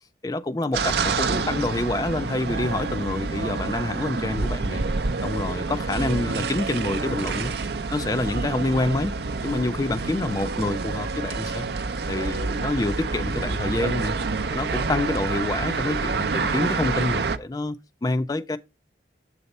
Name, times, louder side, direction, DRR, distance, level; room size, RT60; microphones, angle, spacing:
voice 1, 0.2-4.8 5.2-7.5 7.9-9.1 9.4-11.7 12.1-14.2 14.5-18.6, left 2 dB, 20° left, 0.3 m, -27 dB
sound 1, 0.7-17.4, right 4 dB, 60° right, 0.5 m, -28 dB
6.8 x 4.1 x 5.3 m
head